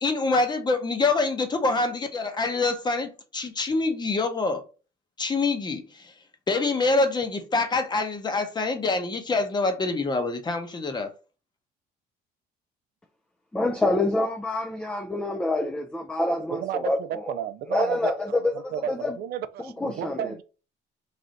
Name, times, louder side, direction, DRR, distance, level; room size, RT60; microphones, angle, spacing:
voice 1, 0.0-4.6 5.2-6.1 6.5-11.1, left 3 dB, 25° left, 0.8 m, -25 dB
voice 2, 13.5-17.3 17.7-19.2 19.6-20.3, left 2 dB, 5° left, 0.4 m, -27 dB
voice 3, 16.5-18.4 18.7-20.4, right 10 dB, 70° right, 0.4 m, -33 dB
3.3 x 2.6 x 3.9 m
cardioid pair, 110°, 17 cm